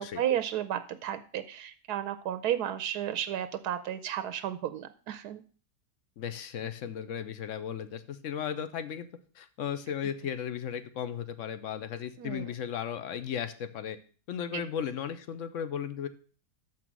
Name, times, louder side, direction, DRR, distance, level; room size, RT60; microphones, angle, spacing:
voice 1, 0.0-5.4 12.2-12.5 14.5-14.6, right 10 dB, 80° right, 12 dB, 1.1 m, -33 dB
voice 2, 6.2-9.1 9.4-14.0 14.3-16.1, left 8 dB, 60° left, 11 dB, 0.9 m, -35 dB
6.8 x 6.1 x 6.1 m, 0.41 s
omnidirectional pair, 1.7 m